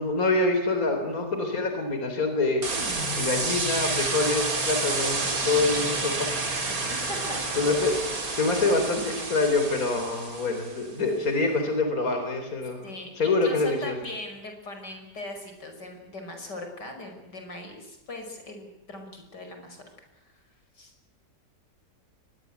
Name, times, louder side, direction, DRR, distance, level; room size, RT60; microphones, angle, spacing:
voice 1, 0.0-6.4 6.9-7.1 7.6-12.9 13.2-13.9, left 3 dB, 55° left, 5 dB, 4.1 m, -26 dB
sound 1, 2.6-10.8, right 3 dB, 55° right, 3.7 m, -29 dB
voice 2, 7.1-7.4 7.8-8.1 12.8-19.8 20.2-20.4 20.7-20.9, left 1 dB, 85° left, 4 dB, 6.1 m, -39 dB
23.5 x 21.0 x 8.2 m, 0.99 s
omnidirectional pair, 1.8 m